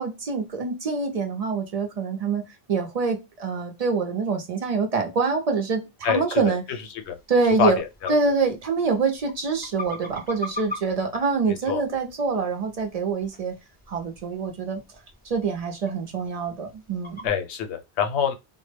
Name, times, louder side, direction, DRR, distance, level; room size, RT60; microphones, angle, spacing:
voice 1, 0.0-2.4 2.7-6.6 7.3-7.8 8.1-13.5 13.9-14.8 15.2-17.2, right 4 dB, 55° right, 0.4 m, -25 dB
voice 2, 6.0-6.5 6.9-7.2 7.6-8.1 11.7-11.8 17.2-18.3, left 7 dB, 85° left, 0.9 m, -25 dB
sound 1, 7.0-17.3, left 3 dB, 15° left, 0.4 m, -42 dB
2.0 x 2.0 x 3.2 m
omnidirectional pair, 1.1 m